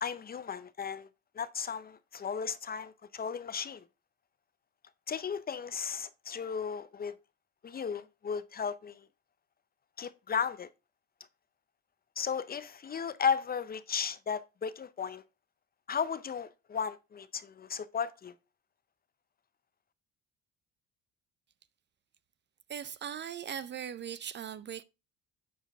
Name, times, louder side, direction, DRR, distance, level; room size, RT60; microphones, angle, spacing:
voice 1, 0.0-1.1 1.3-3.8 5.1-7.1 7.6-9.1 10.0-10.7 12.2-15.2 15.9-18.3, left 6 dB, 30° left, 0.6 m, -35 dB
voice 2, 22.7-24.8, right 8 dB, 35° right, 0.5 m, -39 dB
9.2 x 4.5 x 3.5 m
supercardioid pair, 90°, 32 cm